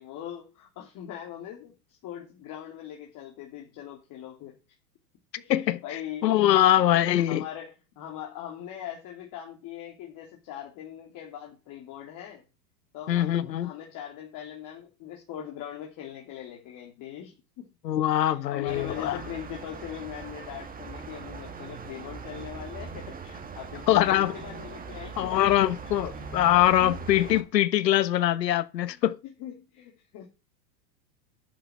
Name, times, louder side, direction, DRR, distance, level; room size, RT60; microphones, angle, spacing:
voice 1, 0.0-4.5 5.4-6.4 6.7-12.4 12.9-17.7 18.2-25.4 25.8-27.0 28.9-30.3, left 10 dB, 40° left, 3.1 m, -41 dB
voice 2, 5.5-5.8 6.2-7.4 13.1-13.7 17.8-19.2 23.9-24.3 25.2-29.2, left 12 dB, 85° left, 1.3 m, -23 dB
sound 1, 18.7-27.4, right 5 dB, 15° right, 2.0 m, -40 dB
10.0 x 6.9 x 6.1 m
hypercardioid pair, 120°, 49 cm